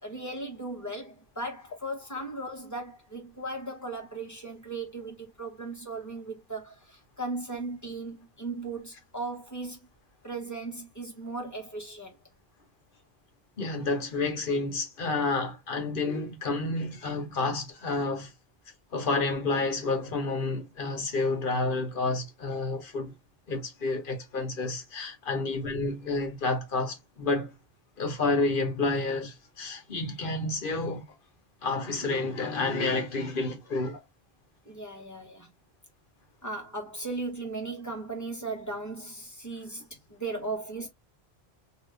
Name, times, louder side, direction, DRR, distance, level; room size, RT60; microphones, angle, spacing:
voice 1, 0.0-9.8 10.2-12.2 25.3-25.5 34.7-35.5 36.4-40.9, right 2 dB, 15° left, 1.2 m, -37 dB
voice 2, 13.6-18.3 18.9-23.1 23.5-27.5 28.0-31.2 31.6-34.0, left 3 dB, 55° left, 1.1 m, -30 dB
2.9 x 2.4 x 3.4 m
omnidirectional pair, 1.1 m